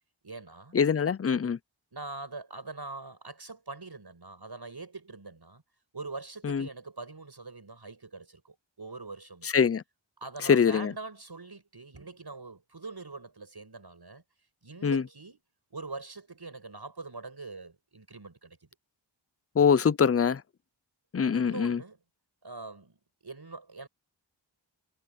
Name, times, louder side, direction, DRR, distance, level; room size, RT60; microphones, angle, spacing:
voice 1, 0.2-0.7 1.9-5.6 5.9-9.5 10.2-14.2 14.6-15.4 15.7-18.7 21.3-22.0 22.4-23.0 23.2-23.9, right 3 dB, 55° right, 6.8 m, -43 dB
voice 2, 0.7-1.6 6.4-6.7 9.5-9.8 10.5-10.9 14.8-15.0 19.6-20.4 21.1-21.8, left 6 dB, 30° left, 0.5 m, -23 dB
wide cardioid pair, 50°, 46 cm